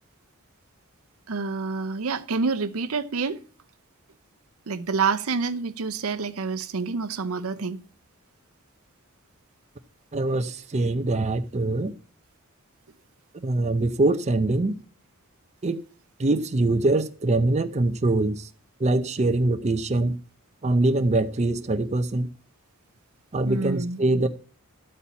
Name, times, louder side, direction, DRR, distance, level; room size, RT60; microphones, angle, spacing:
voice 1, 1.3-3.4 4.7-7.8 23.5-24.0, right 4 dB, 75° right, 0.7 m, -27 dB
voice 2, 10.1-11.9 13.3-14.8 15.6-15.8 16.2-18.5 18.8-20.2 20.6-22.3 23.3-24.3, right 2 dB, 30° right, 0.6 m, -23 dB
13.0 x 4.3 x 8.3 m
head